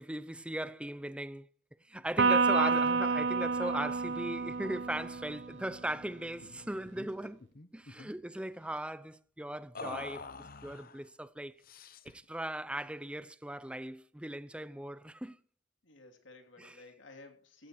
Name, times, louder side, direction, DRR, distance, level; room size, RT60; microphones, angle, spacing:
voice 1, 0.0-1.5 1.9-7.4 7.7-10.3 10.6-11.5 12.0-15.4 16.6-16.8, right 1 dB, 5° right, 0.5 m, -38 dB
Electric guitar, 2.2-5.7, right 4 dB, 70° right, 0.8 m, -29 dB
sound 1, 6.4-6.6 6.9-7.1 7.4-8.2 9.7-11.0 11.6-12.2, left 4 dB, 50° left, 1.0 m, -46 dB
voice 2, 7.9-8.4 15.8-17.7, left 2 dB, 85° left, 3.0 m, -55 dB
16.0 x 16.0 x 3.1 m
head